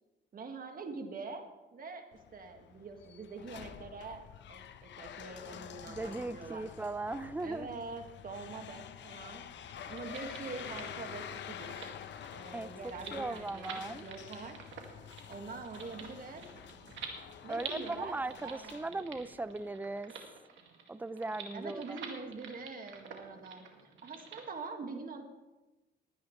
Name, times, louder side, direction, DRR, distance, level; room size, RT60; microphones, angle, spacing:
voice 1, 0.3-1.4 1.7-4.2 4.5-6.7 7.4-9.4 9.9-11.8 12.3-14.6 15.3-16.5 17.4-19.2 21.5-25.2, right 4 dB, 45° right, 5 dB, 1.9 m, -44 dB
sound 1, 2.1-19.6, left 9 dB, 65° left, 0.9 m, -48 dB
voice 2, 5.9-7.7 12.5-14.0 17.5-20.1 20.9-22.0, right 2 dB, 10° right, 16 dB, 0.5 m, -38 dB
sound 2, 9.6-24.4, right 6 dB, 70° right, 2.2 m, -49 dB
20.0 x 10.0 x 3.2 m, 1.1 s
cardioid pair, 90°, 20 cm